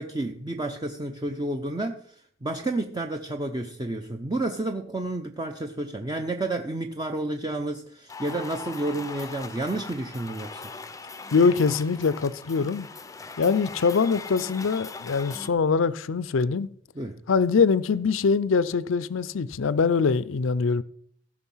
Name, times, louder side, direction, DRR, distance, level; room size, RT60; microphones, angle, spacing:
voice 1, 0.0-2.0 2.4-10.6 17.0-17.2, right 2 dB, 20° right, 0.7 m, -30 dB
sound 1, 8.1-15.5, left 4 dB, 15° left, 0.6 m, -40 dB
voice 2, 11.3-12.9 13.4-16.7 17.3-20.8, left 5 dB, 75° left, 0.5 m, -23 dB
16.0 x 6.2 x 5.6 m
head